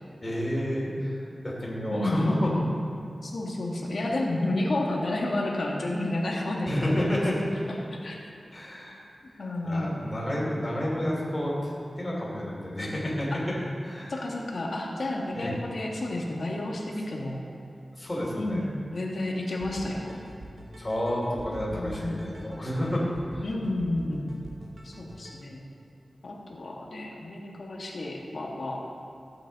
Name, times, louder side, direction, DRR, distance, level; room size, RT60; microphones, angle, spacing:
voice 1, 0.2-2.5 6.6-7.3 8.5-9.0 9.6-11.7 12.0-13.3 13.8-14.1 15.3-15.6 18.0-18.7 20.8-23.0 23.3-23.4, equal, 20° left, -5 dB, 2.8 m, -30 dB
voice 2, 1.9-2.8 3.2-7.2 7.5-8.2 9.4-10.1 13.3-13.4 14.1-17.4 18.3-20.2 21.7-22.5 23.4-24.3 24.8-25.6 26.2-28.9, left 1 dB, 65° left, -2 dB, 1.7 m, -31 dB
sound 1, 19.6-25.4, right 1 dB, 75° right, 1.5 m, -45 dB
15.0 x 8.0 x 4.1 m, 2.5 s
wide cardioid pair, 120°, 0 cm